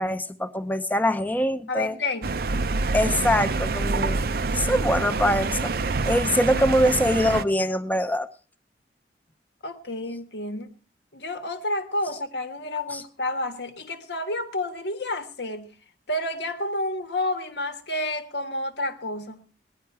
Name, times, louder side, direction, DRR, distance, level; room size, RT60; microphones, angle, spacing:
voice 1, 0.0-2.0 2.9-8.3 12.9-13.0, equal, 10° left, 0.7 m, -24 dB
voice 2, 1.7-2.4 9.6-10.8 11.1-15.7 16.1-19.5, left 1 dB, 75° left, 1.5 m, -30 dB
sound 1, 2.2-7.4, right 3 dB, 55° right, 0.6 m, -26 dB
18.0 x 11.0 x 4.7 m
head